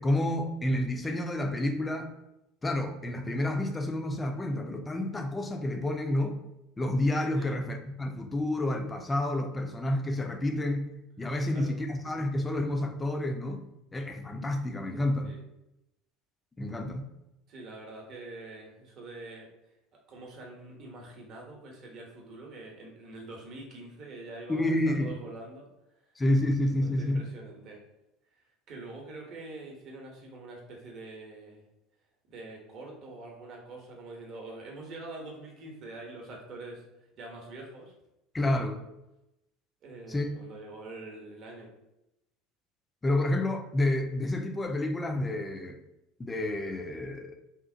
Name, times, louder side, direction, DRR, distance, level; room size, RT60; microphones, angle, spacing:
voice 1, 0.0-2.1 2.6-6.4 6.8-10.9 11.2-13.7 13.9-15.3 16.6-17.1 24.5-25.1 26.2-27.2 38.3-38.8 40.1-40.3 43.0-45.8 46.2-47.4, left 1 dB, 15° left, 5 dB, 0.4 m, -29 dB
voice 2, 11.4-11.8 15.2-15.4 17.5-19.5 20.1-25.7 26.8-27.8 28.7-31.6 32.3-36.8 37.1-37.9 39.8-41.7, right 2 dB, 45° right, -1 dB, 0.7 m, -45 dB
2.9 x 2.0 x 2.6 m, 0.90 s
figure-of-eight pair, 70°, 0 cm